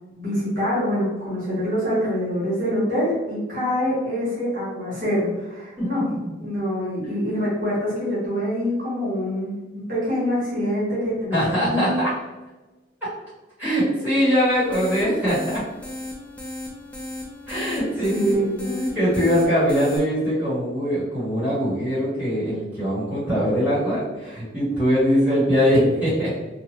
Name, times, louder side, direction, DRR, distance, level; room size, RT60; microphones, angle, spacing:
voice 1, 0.1-6.1 6.4-12.0 18.1-18.7, equal, 45° right, -9 dB, 1.3 m, -25 dB
voice 2, 5.8-6.3 11.3-12.1 13.6-15.6 17.5-18.4 18.6-26.4, equal, 10° right, -12 dB, 1.5 m, -22 dB
sound 1, 14.4-20.0, left 1 dB, 5° left, 0.4 m, -36 dB
2.7 x 2.3 x 3.1 m, 1.1 s
head